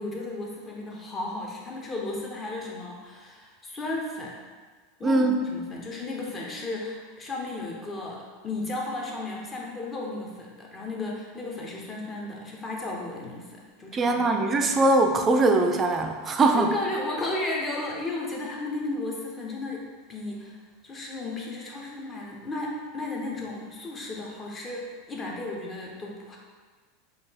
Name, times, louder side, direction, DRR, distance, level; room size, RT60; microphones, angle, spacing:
voice 1, 0.0-4.5 5.0-14.5 16.5-20.6 20.8-26.4, left 2 dB, 25° left, -1 dB, 0.7 m, -34 dB
voice 2, 5.0-5.4 13.9-16.7, right 2 dB, 25° right, 4 dB, 0.4 m, -21 dB
3.9 x 2.3 x 3.3 m, 1.5 s
supercardioid pair, 120°, 0 cm